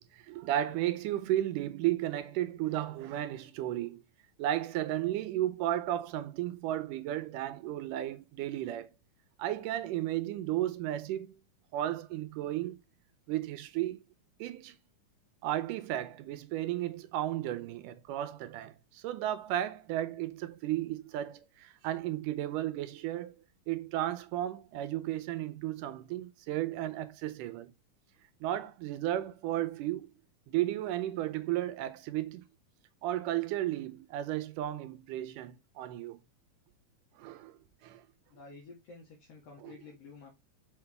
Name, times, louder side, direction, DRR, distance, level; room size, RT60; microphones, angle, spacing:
voice 1, 0.0-4.0 4.4-8.9 9.4-11.3 11.7-12.8 13.3-14.0 14.4-14.8 15.4-23.3 23.7-27.7 28.4-30.1 30.5-32.4 33.0-36.2 37.2-37.5 37.8-38.0, right 13 dB, 85° right, 2.3 m, -34 dB
voice 2, 38.3-40.3, left 4 dB, 55° left, 3.0 m, -51 dB
6.4 x 5.8 x 3.4 m
omnidirectional pair, 3.7 m